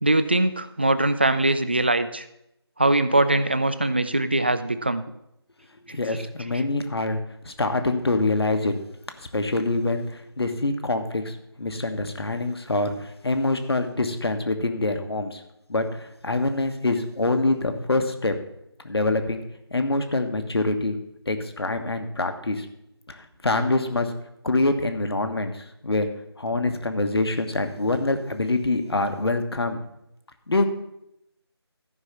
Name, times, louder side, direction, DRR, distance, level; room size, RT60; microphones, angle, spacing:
voice 1, 0.0-2.3 2.8-5.0 5.9-6.0 6.5-6.6, right 2 dB, 25° right, 12 dB, 0.3 m, -22 dB
voice 2, 5.9-7.2 7.4-8.7 9.3-15.4 15.7-18.3 18.8-19.4 19.7-21.0 21.3-22.7 23.1-24.1 24.4-26.1 26.4-29.8 30.5-30.6, left 2 dB, 65° left, 7 dB, 1.3 m, -25 dB
13.5 x 5.5 x 5.8 m, 0.83 s
figure-of-eight pair, 160°, 14 cm